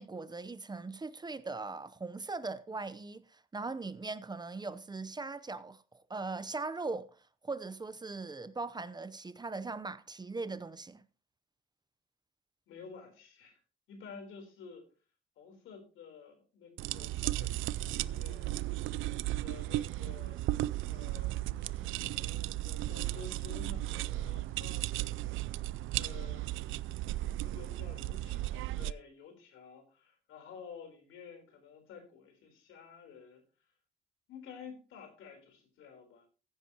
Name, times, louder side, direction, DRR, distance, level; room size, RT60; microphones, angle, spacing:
voice 1, 0.0-5.8 6.1-7.1 7.4-11.0, right 3 dB, 20° right, 0.7 m, -40 dB
voice 2, 12.7-13.6 13.9-14.8 15.4-18.8 19.0-20.5 20.9-25.2 25.9-26.7 27.4-33.4 34.3-36.3, left 6 dB, 85° left, 3.8 m, -51 dB
sound 1, 16.8-28.9, right 16 dB, 85° right, 0.4 m, -35 dB
15.5 x 10.0 x 2.9 m
cardioid pair, 90°, 20 cm